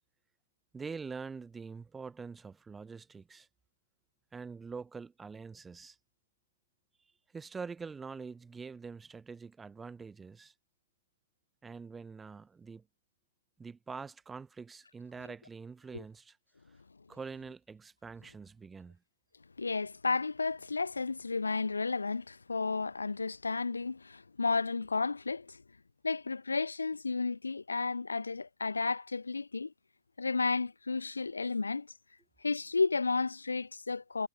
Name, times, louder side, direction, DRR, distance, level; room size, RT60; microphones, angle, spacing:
voice 1, 0.7-3.5 4.3-6.0 7.3-10.5 11.6-12.8 13.6-16.4 17.1-19.0, right 5 dB, 10° right, 1.9 m, -45 dB
voice 2, 19.6-25.6 26.0-29.7 30.2-31.9 32.4-34.3, left 4 dB, 75° left, 1.9 m, -32 dB
figure-of-eight pair, 115°, 0 cm